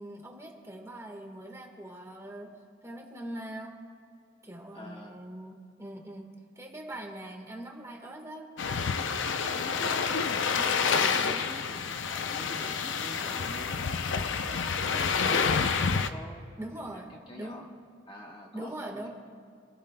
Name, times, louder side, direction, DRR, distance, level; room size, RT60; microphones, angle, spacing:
voice 1, 0.0-3.8 4.4-6.2 6.5-8.5 16.6-17.7 18.5-19.1, right 1 dB, 15° right, 1 dB, 1.5 m, -42 dB
voice 2, 4.7-5.2 9.5-15.7 15.9-16.4 16.8-17.7 18.1-19.1, left 1 dB, 25° left, 0 dB, 1.3 m, -47 dB
sound 1, 8.6-16.1, left 5 dB, 75° left, 0.6 m, -28 dB
28.0 x 15.5 x 2.2 m, 2.3 s
head